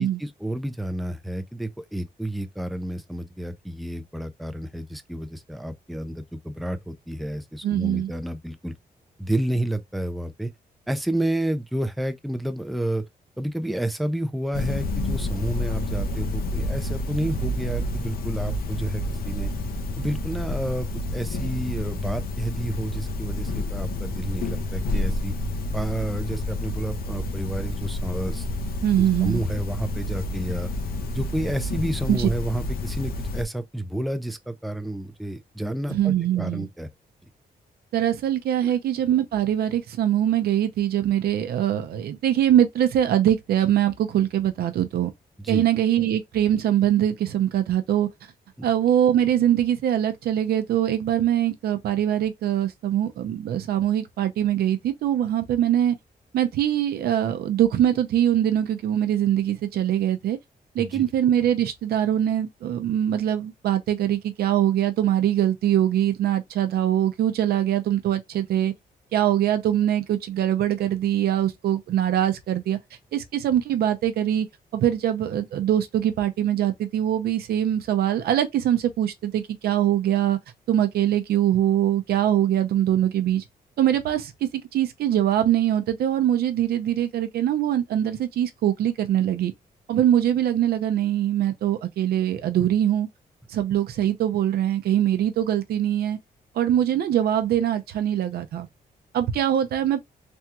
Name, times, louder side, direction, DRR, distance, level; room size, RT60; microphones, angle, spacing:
voice 1, 0.0-8.7 9.2-10.5 10.9-13.0 13.4-19.5 20.0-25.4 25.7-28.5 29.0-30.7 31.1-36.9 38.6-38.8 45.4-45.6 48.6-48.7 60.8-61.0, right 1 dB, ahead, 0.4 m, -30 dB
voice 2, 7.6-8.1 28.8-29.4 32.1-32.3 35.9-36.7 37.9-45.1 45.5-48.1 48.6-56.0 56.3-60.4 60.7-68.7 69.1-72.8 73.1-74.5 74.7-80.4 80.7-83.4 83.8-89.5 89.9-93.1 93.5-96.2 96.5-98.7 99.1-100.0, right 11 dB, 90° right, 0.6 m, -23 dB
sound 1, 14.5-33.4, left 1 dB, 70° left, 0.7 m, -29 dB
3.4 x 2.3 x 2.8 m
wide cardioid pair, 135°, 16 cm